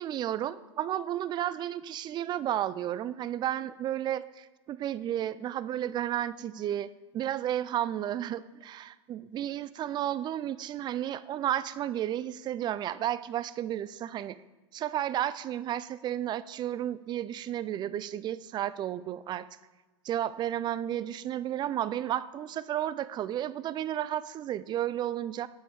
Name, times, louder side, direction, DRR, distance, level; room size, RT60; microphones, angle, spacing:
voice 1, 0.0-14.4 14.7-19.5 20.0-25.5, right 11 dB, 30° right, 16 dB, 0.4 m, -32 dB
8.5 x 5.4 x 4.7 m, 1.2 s
hypercardioid pair, 105°, 16 cm